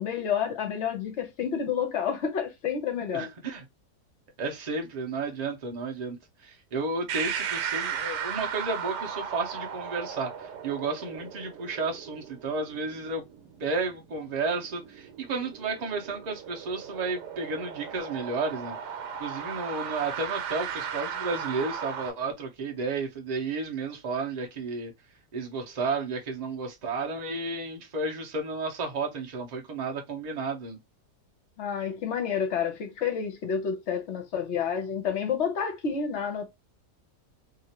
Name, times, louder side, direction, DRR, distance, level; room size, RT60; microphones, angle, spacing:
voice 1, 0.0-3.3 31.6-36.4, left 7 dB, 55° left, 0.8 m, -29 dB
voice 2, 3.1-3.6 4.4-13.2 13.6-18.8 19.2-24.9 25.3-30.8, right 3 dB, 50° right, 0.4 m, -32 dB
sound 1, 7.1-22.1, right 8 dB, 80° right, 1.2 m, -36 dB
2.8 x 2.4 x 2.7 m
omnidirectional pair, 1.8 m